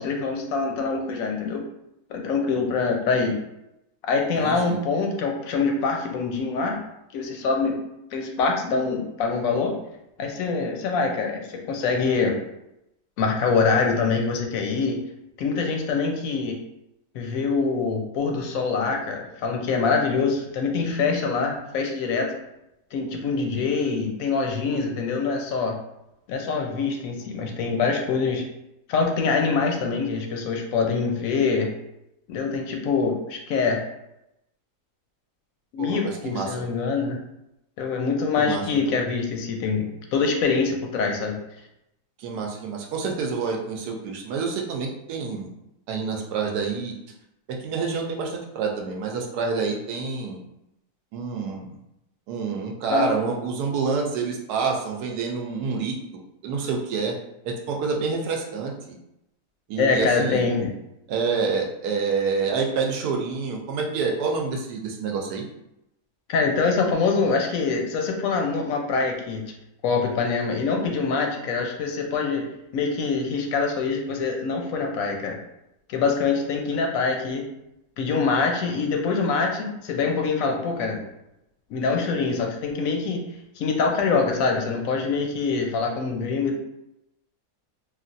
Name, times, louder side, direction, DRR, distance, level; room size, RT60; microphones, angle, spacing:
voice 1, 0.0-1.7 2.1-3.4 4.1-6.8 7.1-7.8 8.1-9.8 10.2-12.3 13.2-15.0 15.4-16.6 17.1-22.3 22.9-25.7 26.3-28.4 28.9-31.7 32.3-33.8 35.7-37.2 37.8-39.8 40.1-41.4 52.9-53.1 59.8-60.7 66.3-69.4 69.8-72.4 72.7-75.4 75.9-77.4 78.0-81.0 81.7-83.2 83.6-86.6, left 4 dB, 70° left, 2 dB, 0.9 m, -24 dB
voice 2, 4.4-4.8 35.8-36.0 36.2-36.6 38.4-38.6 42.2-45.5 45.9-46.9 47.5-50.4 51.1-51.8 52.3-55.9 56.4-57.1 57.4-59.0 59.7-60.5 61.1-65.4, right 5 dB, 80° right, 1 dB, 1.1 m, -27 dB
3.2 x 2.4 x 2.5 m, 0.86 s
omnidirectional pair, 1.7 m